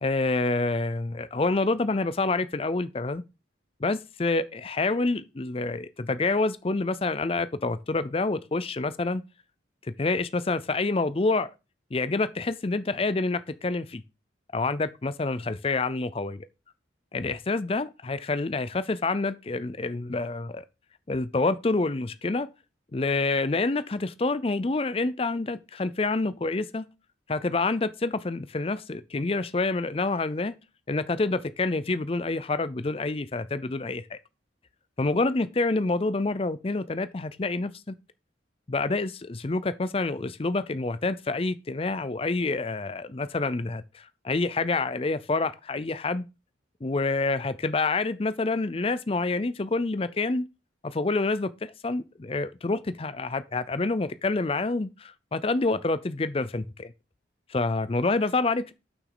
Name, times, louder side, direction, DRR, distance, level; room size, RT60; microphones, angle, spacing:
voice 1, 0.0-3.2 3.8-9.2 10.0-11.5 11.9-14.0 14.5-16.5 17.1-20.6 21.1-22.5 22.9-26.9 27.3-30.5 30.9-34.2 35.0-38.0 38.7-46.3 46.8-50.5 50.8-56.9 57.5-58.7, left 3 dB, 30° left, 0.5 m, -27 dB
6.2 x 6.1 x 4.9 m
head